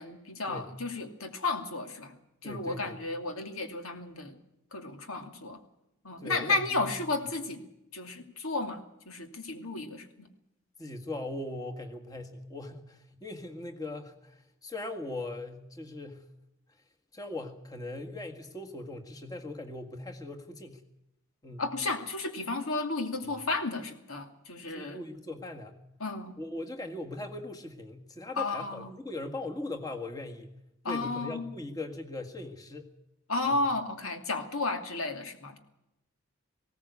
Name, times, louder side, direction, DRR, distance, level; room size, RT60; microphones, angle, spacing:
voice 1, 0.0-2.1 2.4-4.4 4.7-5.6 6.0-7.6 7.9-10.3 21.6-25.0 26.0-26.4 28.4-28.9 30.8-31.5 33.3-35.6, left 3 dB, 85° left, 5 dB, 2.7 m, -33 dB
voice 2, 2.4-3.0 6.2-6.9 10.8-16.3 17.1-20.8 21.4-21.7 23.3-23.4 24.7-25.8 26.4-30.5 30.9-32.8 33.4-33.5, left 2 dB, 15° left, 4 dB, 1.8 m, -40 dB
20.0 x 17.0 x 8.4 m, 0.87 s
head